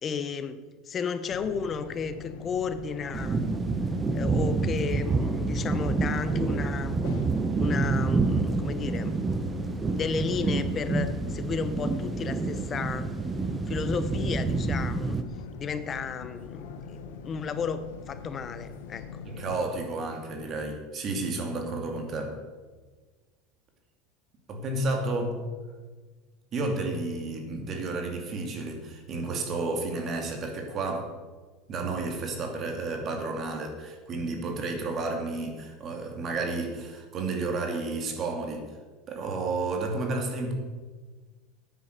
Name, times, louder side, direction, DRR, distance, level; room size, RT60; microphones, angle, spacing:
voice 1, 0.0-3.4 4.1-7.0 7.6-9.2 9.9-13.1 13.7-15.2 15.6-19.2, left 6 dB, 35° left, 12 dB, 0.9 m, -33 dB
sound 1, 1.3-19.6, left 6 dB, 80° left, 1.1 m, -43 dB
sound 2, 3.1-15.2, right 3 dB, 20° right, 0.9 m, -28 dB
voice 2, 19.3-22.4 24.5-25.5 26.5-31.2 31.7-38.7 39.1-40.5, right 3 dB, 40° right, 4 dB, 2.3 m, -31 dB
9.0 x 8.9 x 6.6 m, 1.4 s
supercardioid pair, 110°, 0 cm